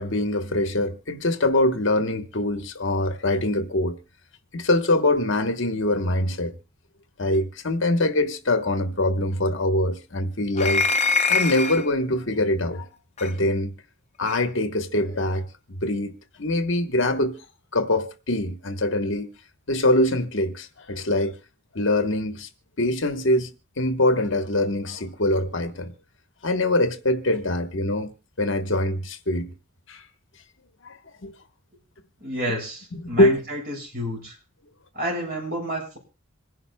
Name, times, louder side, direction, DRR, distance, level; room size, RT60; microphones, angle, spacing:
voice 1, 0.0-4.0 4.5-6.5 7.2-10.9 11.3-12.9 13.2-13.7 14.2-17.3 17.7-19.3 19.7-21.4 21.7-22.5 22.8-23.5 23.8-25.9 26.4-29.5 29.9-30.0 30.8-31.3 32.9-33.4, left 1 dB, 60° left, 1.1 m, -23 dB
sound 1, 10.6-11.9 13.2-13.3 14.3-14.4, left 4 dB, 30° left, 0.6 m, -23 dB
voice 2, 32.2-34.4 34.9-36.0, equal, 45° right, 7.3 m, -30 dB
26.5 x 11.0 x 2.2 m
head